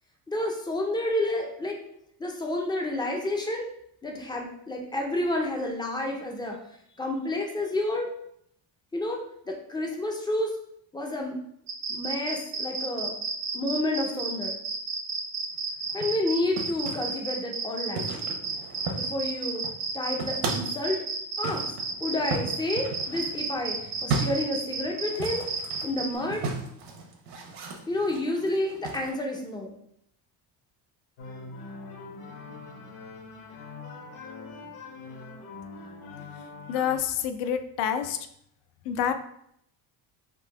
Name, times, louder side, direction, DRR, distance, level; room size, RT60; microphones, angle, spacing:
voice 1, 0.3-1.8 2.2-3.7 4.0-6.6 7.0-8.1 8.9-9.2 9.5-10.5 10.9-11.4 11.9-13.1 13.5-14.6 15.9-18.1 19.0-19.6 19.9-21.0 21.4-21.6 22.0-23.8 24.0-25.5 25.8-26.4 27.9-29.7, left 1 dB, 10° left, 1 dB, 0.4 m, -30 dB
sound 1, 11.7-26.1, right 4 dB, 40° right, 0.6 m, -32 dB
sound 2, 15.8-17.1 18.0-19.3 19.5-20.8 21.4-29.1, right 4 dB, 70° right, 1.0 m, -35 dB
sound 3, 31.2-37.0, left 3 dB, 65° left, 0.9 m, -43 dB
voice 2, 36.7-38.2 38.9-39.1, left 9 dB, 80° left, 9 dB, 0.6 m, -27 dB
3.8 x 2.7 x 4.8 m, 0.72 s
cardioid pair, 170°, 41 cm